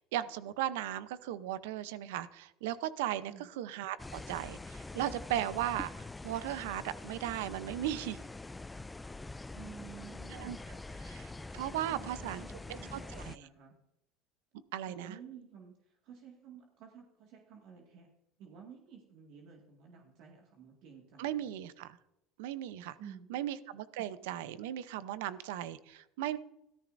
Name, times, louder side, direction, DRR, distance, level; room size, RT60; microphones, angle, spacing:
voice 1, 0.0-8.2 10.3-10.6 11.0-12.4 12.9-13.4 14.7-15.2 21.2-22.0 22.4-23.0 23.3-26.4, right 12 dB, 85° right, 14 dB, 0.7 m, -37 dB
sound 1, 4.0-13.4, left 2 dB, 10° left, 0.3 m, -45 dB
voice 2, 9.5-10.6 11.6-13.8 14.9-18.1 18.4-21.5 23.0-23.4 24.2-24.3, right 7 dB, 65° right, 0 dB, 1.9 m, -52 dB
14.5 x 13.0 x 2.6 m, 0.84 s
supercardioid pair, 115°, 0 cm